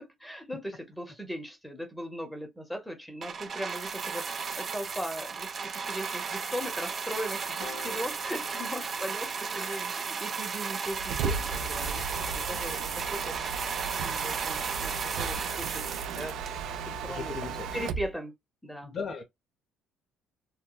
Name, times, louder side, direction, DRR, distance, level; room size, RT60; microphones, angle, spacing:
voice 1, 0.0-11.9 12.3-13.3 13.7-16.4 16.7-18.3 18.6-19.0, equal, ahead, 0.8 m, -39 dB
sound 1, 3.2-16.9 17.6-17.7, right 5 dB, 35° right, 0.7 m, -35 dB
Piano, 7.6-14.0, left 5 dB, 90° left, 1.1 m, -52 dB
Mechanisms, 10.8-18.1, right 6 dB, 70° right, 0.4 m, -35 dB
voice 2, 17.1-17.7 18.8-19.2, left 5 dB, 35° left, 0.7 m, -37 dB
2.9 x 2.2 x 2.2 m
cardioid pair, 155°, 0 cm